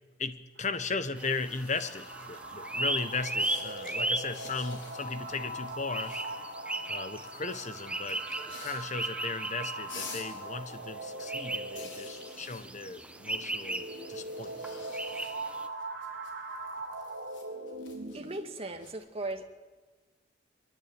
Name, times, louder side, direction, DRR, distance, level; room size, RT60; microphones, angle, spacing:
voice 1, 0.2-6.2 6.9-14.7, left 4 dB, 40° left, 11 dB, 1.4 m, -36 dB
sound 1, 0.6-18.5, right 2 dB, 65° right, 4.2 m, -41 dB
sound 2, 0.7-2.6 3.1-5.1 5.4-6.5 7.2-9.2 9.5-13.5 13.8-18.9, left 4 dB, 75° left, 5.3 m, -50 dB
sound 3, 1.2-15.7, right 1 dB, 5° right, 1.2 m, -37 dB
voice 2, 18.1-19.4, right 2 dB, 30° right, 5 dB, 2.2 m, -37 dB
24.0 x 23.0 x 9.2 m, 1.2 s
head